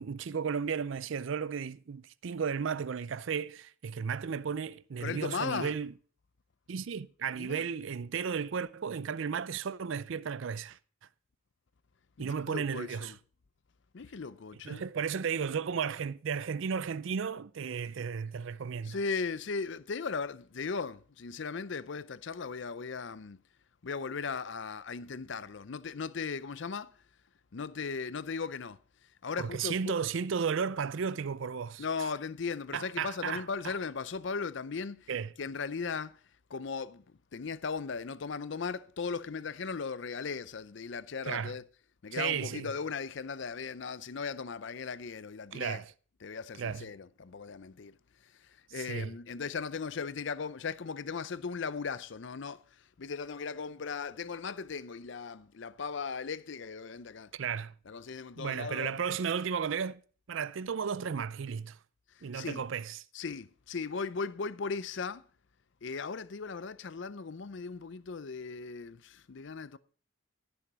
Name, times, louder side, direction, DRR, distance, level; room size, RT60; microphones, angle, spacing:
voice 1, 0.0-5.9 6.7-10.8 12.2-13.2 14.6-19.0 29.4-31.8 32.7-33.8 35.1-35.3 41.2-41.6 42.1-42.7 45.5-45.9 46.6-46.9 48.7-49.1 57.3-57.7 58.4-60.0 60.3-61.8 62.2-63.0, right 6 dB, 65° right, 0.4 m, -34 dB
voice 2, 5.0-5.7 7.4-7.6 12.2-13.2 13.9-14.8 18.8-23.4 23.8-27.0 27.5-28.8 29.2-29.9 31.8-35.1 35.4-36.2 36.5-37.0 37.3-41.6 42.0-45.8 46.2-48.0 48.2-57.3 57.9-59.0 62.1-62.6 63.1-65.2 65.8-69.8, left 5 dB, 60° left, 0.5 m, -37 dB
15.0 x 7.1 x 5.0 m
head